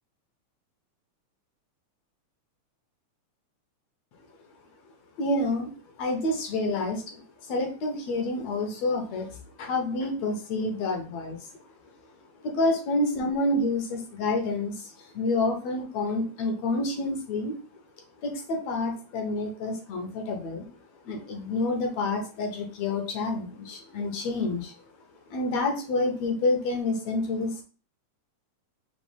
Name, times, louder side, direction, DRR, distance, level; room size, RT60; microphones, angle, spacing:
voice 1, 5.2-5.7 6.0-11.5 12.4-17.6 18.2-20.7 21.1-24.7 25.3-27.6, left 2 dB, 70° left, 2 dB, 1.9 m, -28 dB
5.2 x 2.9 x 3.3 m, 0.36 s
omnidirectional pair, 3.6 m